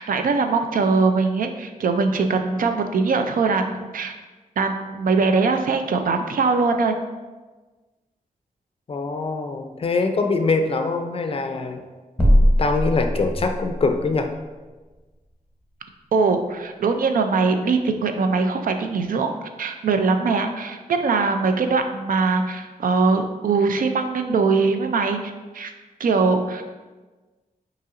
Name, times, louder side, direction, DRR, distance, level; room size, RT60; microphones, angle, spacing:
voice 1, 0.0-4.1 4.6-6.9 16.1-25.2 25.5-25.7 26.0-26.6, right 4 dB, 75° right, 6 dB, 0.4 m, -21 dB
voice 2, 8.9-11.8 12.6-14.3, left 3 dB, 40° left, 6 dB, 0.4 m, -23 dB
sound 1, 12.2-13.8, equal, 5° left, 0.9 m, -19 dB
5.5 x 3.0 x 2.5 m, 1.3 s
wide cardioid pair, 105°, 15 cm